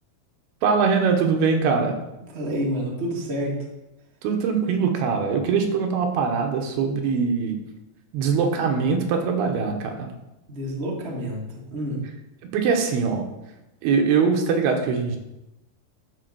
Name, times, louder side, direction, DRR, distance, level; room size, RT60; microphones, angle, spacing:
voice 1, 0.6-2.0 4.2-7.6 8.1-10.1 12.5-13.2 13.8-15.2, right 5 dB, 85° right, 3 dB, 3.1 m, -22 dB
voice 2, 2.3-3.5 10.5-12.0, equal, 35° right, -3 dB, 0.9 m, -28 dB
12.0 x 4.0 x 6.2 m, 0.96 s
omnidirectional pair, 4.5 m